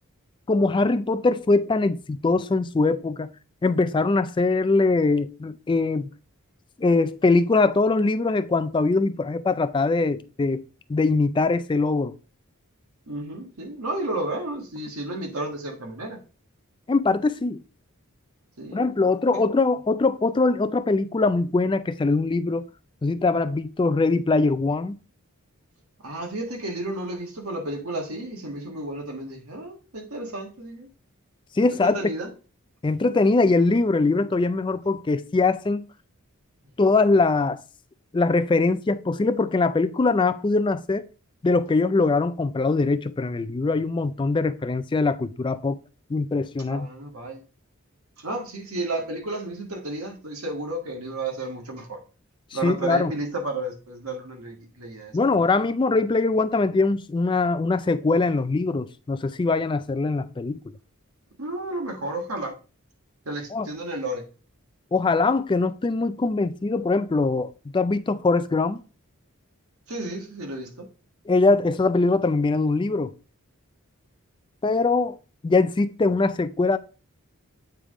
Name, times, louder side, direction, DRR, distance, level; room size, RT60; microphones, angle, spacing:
voice 1, 0.5-3.3 3.6-6.1 6.8-10.6 10.9-12.1 16.9-17.6 18.7-22.6 23.0-25.0 31.6-32.0 32.8-35.8 36.8-37.6 38.1-41.1 41.4-45.8 46.1-46.9 52.6-53.1 55.1-60.6 63.5-63.7 64.9-68.8 71.3-73.1 74.6-75.2 75.4-76.8, left 3 dB, 20° left, 0.3 m, -22 dB
voice 2, 13.1-16.2 18.6-18.9 19.3-19.4 26.0-30.9 31.7-32.3 46.7-47.4 48.2-52.0 52.5-55.4 61.4-62.6 63.2-64.2 69.9-70.9, right 2 dB, 85° right, 1.6 m, -32 dB
8.8 x 3.5 x 3.7 m
head